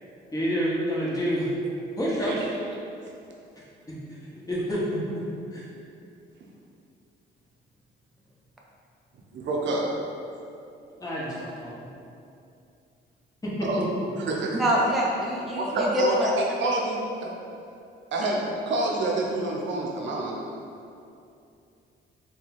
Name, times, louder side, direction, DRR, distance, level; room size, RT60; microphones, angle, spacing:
voice 1, 0.3-1.5 2.0-2.5 4.1-5.0 5.5-5.6 11.0-11.9, equal, 20° left, -7 dB, 1.1 m, -28 dB
voice 2, 9.3-9.9 13.6-13.8 14.3-14.6 15.6-17.3 18.1-20.4, right 2 dB, 65° right, -2 dB, 0.6 m, -27 dB
voice 3, 14.5-16.3 18.2-18.4, equal, ahead, -4 dB, 0.4 m, -25 dB
3.1 x 2.3 x 4.0 m, 2.6 s
cardioid pair, 90°, 20 cm